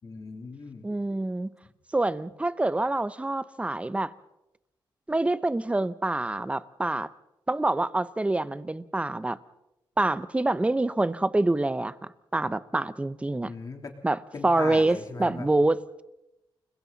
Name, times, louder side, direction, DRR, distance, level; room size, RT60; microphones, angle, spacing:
voice 1, 0.0-0.9 1.6-1.7 13.4-13.9 14.3-15.5, left 4 dB, 45° left, 3.4 m, -39 dB
voice 2, 0.8-1.5 1.9-4.1 5.1-7.1 7.5-9.4 10.0-11.9 12.3-13.5 14.0-14.2 14.4-16.0, right 2 dB, 15° right, 0.8 m, -26 dB
29.5 x 21.5 x 4.1 m
cardioid pair, 100°, 8 cm